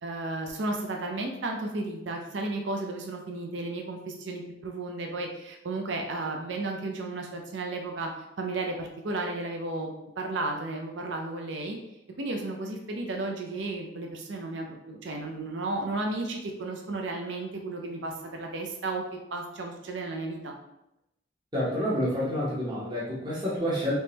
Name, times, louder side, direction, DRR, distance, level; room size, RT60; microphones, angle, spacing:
voice 1, 0.0-8.1 8.4-11.8 12.2-19.0 19.3-20.5, right 2 dB, 70° right, 2 dB, 0.5 m, -33 dB
voice 2, 21.5-23.9, equal, 25° right, -7 dB, 0.9 m, -28 dB
3.5 x 3.0 x 2.8 m, 0.86 s
head